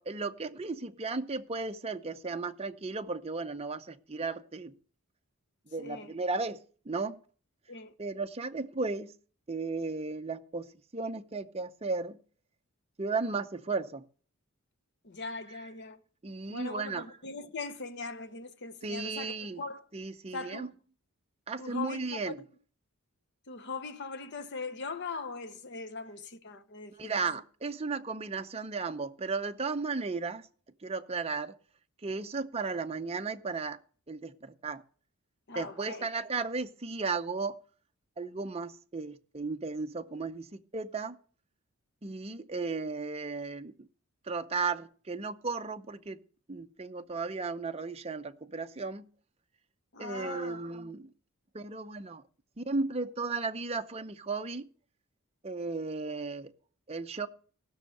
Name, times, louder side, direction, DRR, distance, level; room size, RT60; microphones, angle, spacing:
voice 1, 0.0-4.8 5.7-7.2 8.0-9.1 9.5-12.2 13.0-14.0 16.2-17.1 18.8-19.6 19.9-20.7 21.5-22.4 27.0-30.5 30.8-31.5 32.0-33.8 34.1-34.8 35.5-37.6 38.2-41.2 42.0-43.9 44.2-46.2 46.5-49.1 50.0-51.1 51.5-52.2 52.6-54.7 55.4-56.5 56.9-57.3, right 4 dB, 25° right, 0.6 m, -35 dB
voice 2, 5.8-6.1 7.7-7.9 15.0-16.0 16.5-19.9 20.3-20.7 21.6-22.3 23.5-27.1 35.5-36.1 49.9-50.6, left 4 dB, 50° left, 1.0 m, -40 dB
16.0 x 6.4 x 6.6 m
head